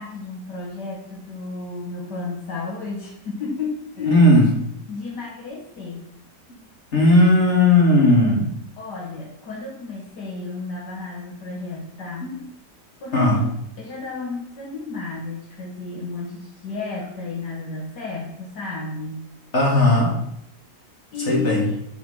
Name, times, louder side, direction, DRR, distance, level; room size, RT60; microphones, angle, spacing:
voice 1, 0.0-4.3 4.9-6.1 8.8-12.3 13.0-13.5 13.8-19.2 21.1-21.8, left 3 dB, 70° left, -3 dB, 2.1 m, -32 dB
voice 2, 4.1-4.5 6.9-8.5 12.2-12.4 13.1-13.4 19.5-20.1 21.3-21.6, left 1 dB, 40° left, -3 dB, 2.6 m, -16 dB
8.4 x 4.5 x 5.7 m, 0.76 s
omnidirectional pair, 1.9 m